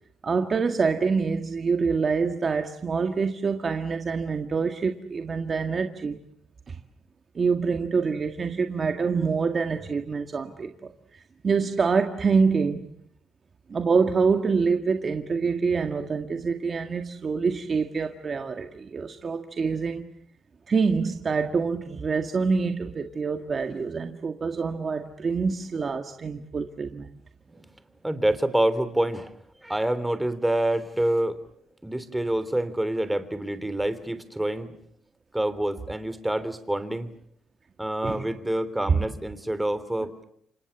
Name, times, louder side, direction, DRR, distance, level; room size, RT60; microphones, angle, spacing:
voice 1, 0.2-6.2 6.7-6.8 7.4-12.9 13.7-20.0 20.7-27.1 38.0-38.3 38.9-39.0, right 5 dB, 40° right, 1.8 m, -26 dB
voice 2, 28.0-29.3 29.6-31.4 31.8-34.7 35.3-37.1 37.8-40.2, right 1 dB, 10° right, 3.3 m, -27 dB
30.0 x 25.5 x 7.2 m
cardioid pair, 90°, 0 cm